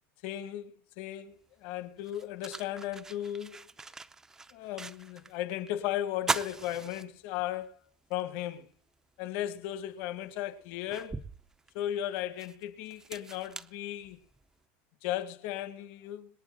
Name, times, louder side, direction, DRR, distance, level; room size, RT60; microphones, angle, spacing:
voice 1, 0.2-3.6 4.5-7.7 8.1-8.7 9.2-11.1 11.7-14.2 15.0-16.3, left 12 dB, 50° left, 2.0 m, -36 dB
sound 1, 1.4-1.5 2.0-5.4 5.7-5.8 6.2-7.7 8.1-8.2 9.6-9.7 10.3-14.5, right 3 dB, 10° right, 0.6 m, -40 dB
26.5 x 9.4 x 3.9 m
supercardioid pair, 175°, 6 cm